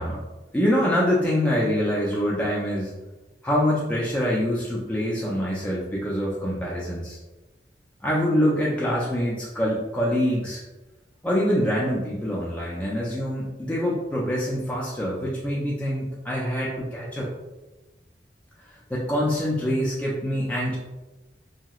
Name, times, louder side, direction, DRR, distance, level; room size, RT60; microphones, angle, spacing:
voice 1, 0.5-2.9 3.4-7.2 8.0-10.6 11.2-17.3 18.7-20.8, equal, 10° left, -5 dB, 0.4 m, -25 dB
2.9 x 2.8 x 2.4 m, 1.1 s
head